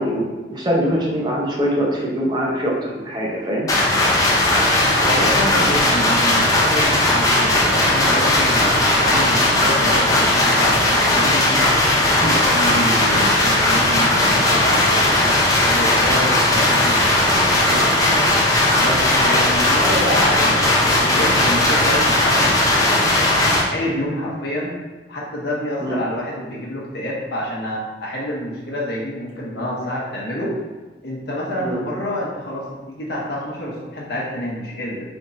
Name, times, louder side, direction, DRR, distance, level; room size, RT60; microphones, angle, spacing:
voice 1, 0.0-3.7 12.2-12.3 17.7-17.8 25.8-26.0 31.6-31.8, equal, 25° right, -4 dB, 0.8 m, -23 dB
sound 1, 3.7-23.6, left 1 dB, 20° left, 0.6 m, -17 dB
voice 2, 5.0-11.6 12.2-17.8 18.8-23.1 23.7-24.7 25.1-30.5 31.0-35.1, left 1 dB, 65° left, -4 dB, 0.8 m, -27 dB
3.5 x 2.6 x 4.0 m, 1.2 s
head